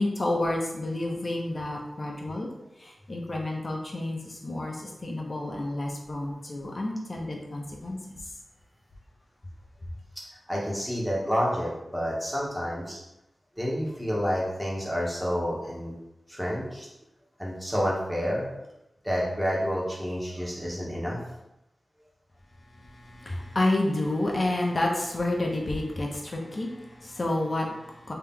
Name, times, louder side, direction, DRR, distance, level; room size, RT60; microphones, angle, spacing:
voice 1, 0.0-2.5 2.8-8.2 22.7-28.1, left 1 dB, 45° left, -1 dB, 0.8 m, -30 dB
voice 2, 10.5-13.0 13.6-15.9 16.3-16.9 17.4-18.5 19.0-21.2, equal, 5° right, -4 dB, 1.3 m, -29 dB
3.3 x 2.9 x 3.7 m, 0.89 s
cardioid pair, 60°, 0 cm